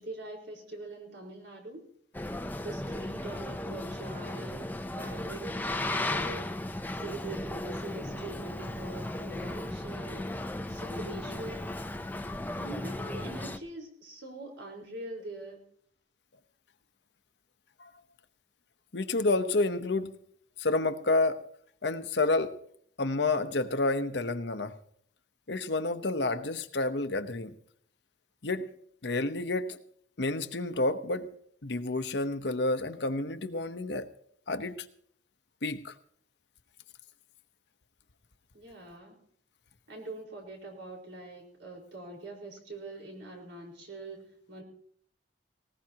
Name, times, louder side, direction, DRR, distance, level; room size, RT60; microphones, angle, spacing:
voice 1, 0.0-1.9 2.6-6.5 6.9-10.3 10.7-11.7 12.6-15.6 38.5-39.2 39.9-44.6, right 2 dB, 85° right, 0 dB, 4.8 m, -43 dB
Boat Water vehicle, 2.1-13.6, left 1 dB, 10° left, 0.6 m, -36 dB
voice 2, 18.9-20.1 20.6-21.4 21.8-22.5 23.0-24.7 25.5-27.5 28.4-28.7 29.0-29.8 30.2-31.3 31.6-34.1 34.5-34.8 35.6-35.9, left 2 dB, 70° left, 10 dB, 1.0 m, -29 dB
19.5 x 18.5 x 2.9 m, 0.63 s
head